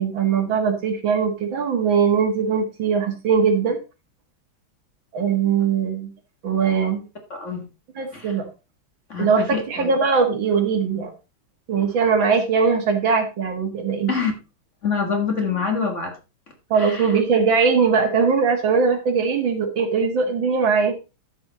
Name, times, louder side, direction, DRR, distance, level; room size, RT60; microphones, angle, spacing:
voice 1, 0.0-3.8 5.1-6.1 6.4-7.0 8.0-8.5 9.2-11.1 11.7-14.1 16.7-20.9, right 5 dB, 65° right, 2.4 m, -20 dB
voice 2, 7.3-7.7 8.1-8.4 9.1-9.9 14.1-14.3 14.8-16.1 16.7-17.2, left 5 dB, 35° left, 1.8 m, -26 dB
13.0 x 5.5 x 4.1 m
omnidirectional pair, 2.3 m